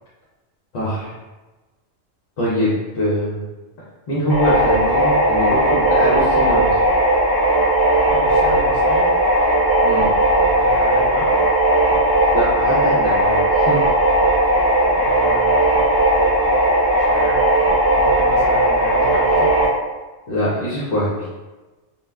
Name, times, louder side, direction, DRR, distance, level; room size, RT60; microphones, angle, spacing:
voice 1, 0.7-1.1 2.4-3.4 4.1-6.8 9.8-10.1 12.3-13.8 20.3-21.3, equal, 55° left, -8 dB, 0.7 m, -23 dB
sound 1, 4.3-19.7, right 1 dB, 30° left, 0.4 m, -17 dB
voice 2, 8.1-9.1 10.4-11.3 14.8-15.7 17.0-17.4 17.9-19.5, equal, 40° right, -6 dB, 0.8 m, -32 dB
2.3 x 2.1 x 3.4 m, 1.2 s
omnidirectional pair, 1.3 m